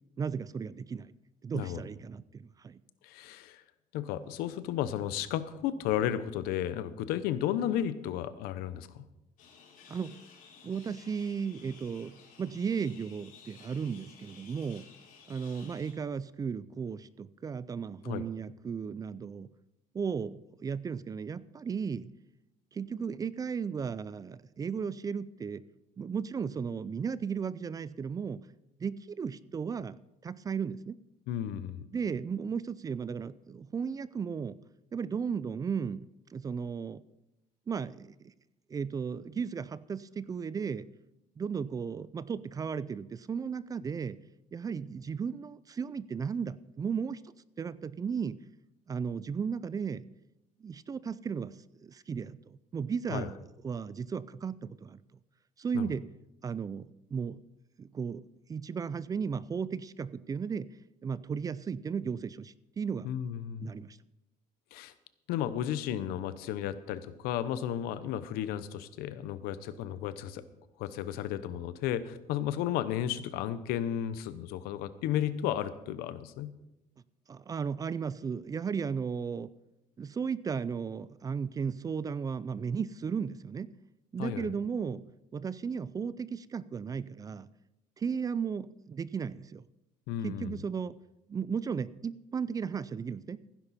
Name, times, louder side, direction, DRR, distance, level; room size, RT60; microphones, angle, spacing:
voice 1, 0.2-1.1 1.4-2.8 9.9-10.2 10.6-14.9 15.3-19.5 19.9-22.1 22.7-25.6 26.0-28.4 28.8-31.0 31.9-34.6 34.9-37.0 37.7-38.3 38.7-40.9 41.4-44.2 44.5-47.2 47.6-48.4 48.9-50.0 50.6-51.6 51.8-53.4 53.6-55.0 55.6-56.0 56.4-57.4 57.8-58.2 58.5-60.7 61.0-63.1 63.6-64.0 77.3-79.5 80.0-83.7 84.1-85.0 85.3-87.5 88.0-89.6 90.2-91.0 91.3-93.4, right 6 dB, 25° right, 18 dB, 0.4 m, -35 dB
voice 2, 3.0-3.6 3.9-9.0 18.0-18.2 31.3-31.8 53.1-53.3 55.7-55.9 63.0-63.7 64.7-64.9 65.3-70.4 70.8-76.5 84.2-84.5 90.1-90.6, left 11 dB, 90° left, 14 dB, 0.9 m, -33 dB
sound 1, 9.4-15.9, left 6 dB, 65° left, 3.9 m, -55 dB
15.5 x 10.5 x 4.2 m, 0.91 s
cardioid pair, 130°, 15 cm